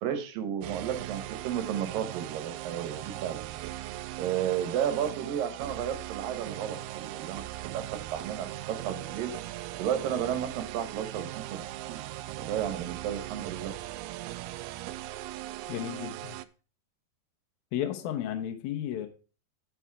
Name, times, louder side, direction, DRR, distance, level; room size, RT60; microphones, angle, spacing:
voice 1, 0.0-3.5 4.2-7.8 8.1-9.3 9.8-11.6 11.9-12.0 12.4-13.7, right 9 dB, 65° right, 9 dB, 2.6 m, -33 dB
sound 1, 0.6-16.5, right 15 dB, 80° right, 2.3 m, -39 dB
voice 2, 15.7-16.4 17.7-19.1, left 11 dB, 70° left, 7 dB, 2.6 m, -33 dB
10.0 x 7.2 x 4.6 m, 0.36 s
omnidirectional pair, 4.8 m